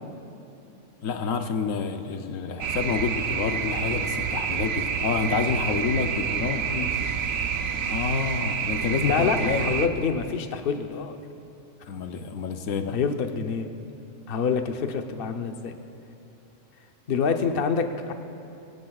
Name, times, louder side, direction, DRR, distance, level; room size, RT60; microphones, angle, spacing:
voice 1, 1.0-6.7 7.9-9.7 11.9-13.0, left 5 dB, 85° left, 7 dB, 1.2 m, -28 dB
sound 1, 2.6-9.9, right 7 dB, 90° right, 1.2 m, -28 dB
voice 2, 9.1-11.2 12.9-13.7 14.3-15.7 17.1-18.1, left 6 dB, 50° left, 6 dB, 0.9 m, -26 dB
25.5 x 17.5 x 2.4 m, 2.8 s
omnidirectional pair, 1.3 m